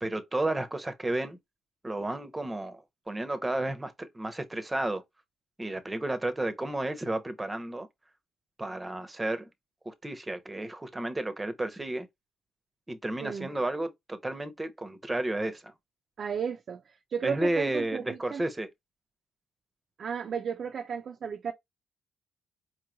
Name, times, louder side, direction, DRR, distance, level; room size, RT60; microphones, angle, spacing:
voice 1, 0.0-1.4 1.8-5.0 5.6-7.9 8.6-9.5 9.8-12.1 12.9-15.7 17.2-18.7, right 1 dB, 15° right, 0.7 m, -32 dB
voice 2, 16.2-16.8 17.1-18.4 20.0-21.5, right 7 dB, 55° right, 0.4 m, -33 dB
4.6 x 3.0 x 2.3 m
cardioid pair, 90°, 0 cm